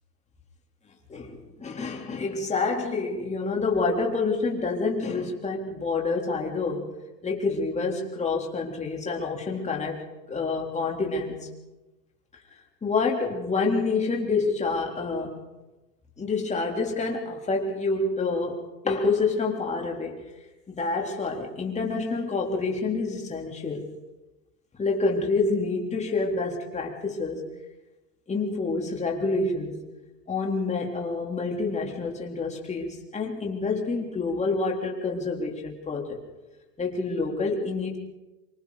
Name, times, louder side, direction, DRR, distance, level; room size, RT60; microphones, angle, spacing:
voice 1, 1.1-6.9 7.2-11.5 12.8-15.4 16.2-20.3 20.7-23.9 24.8-27.4 28.3-29.8 30.3-36.2 36.8-38.0, left 3 dB, 15° left, 0 dB, 3.9 m, -28 dB
26.5 x 25.5 x 4.2 m, 1.1 s
hypercardioid pair, 110°, 49 cm